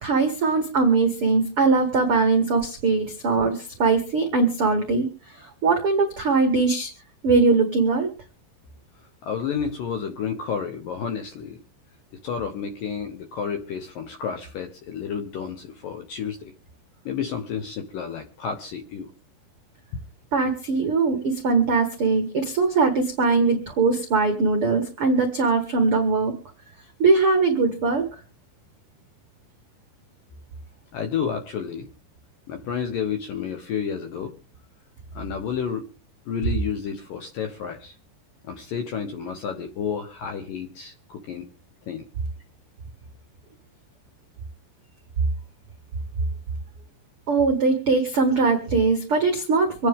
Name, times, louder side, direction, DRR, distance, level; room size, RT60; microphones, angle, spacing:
voice 1, 0.0-5.1 5.6-6.9 7.2-8.1 20.3-26.3 27.0-28.0 47.3-49.9, right 4 dB, 65° right, 4 dB, 1.3 m, -21 dB
voice 2, 9.2-11.6 12.2-16.5 17.1-19.1 19.9-20.0 30.9-31.9 32.5-34.4 35.1-35.9 36.3-38.0 38.4-41.5 41.9-42.0, left 7 dB, 70° left, 7 dB, 2.1 m, -31 dB
26.0 x 9.6 x 3.6 m, 0.36 s
omnidirectional pair, 5.2 m